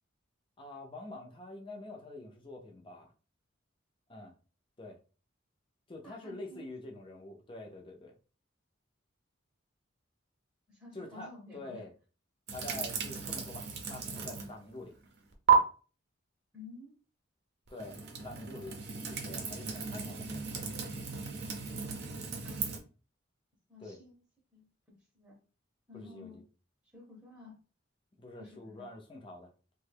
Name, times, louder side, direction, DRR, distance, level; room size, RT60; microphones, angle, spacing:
voice 1, 0.6-3.1 4.1-4.3 4.8-5.0 5.9-8.2 10.9-11.9 12.5-15.0 17.7-18.8 19.1-20.4 23.8-24.0 25.9-26.4 28.2-29.5, left 2 dB, 25° left, 0.6 m, -46 dB
voice 2, 6.0-6.7 10.7-11.8 14.3-14.4 16.5-16.9 22.4-22.7 23.7-24.1 24.5-25.4 25.9-26.4 26.9-27.5 28.4-28.9, left 3 dB, 10° right, 0.8 m, -52 dB
sound 1, 12.5-14.6 14.9-15.5 17.7-22.8, right 7 dB, 55° right, 0.6 m, -34 dB
3.0 x 2.2 x 3.3 m
head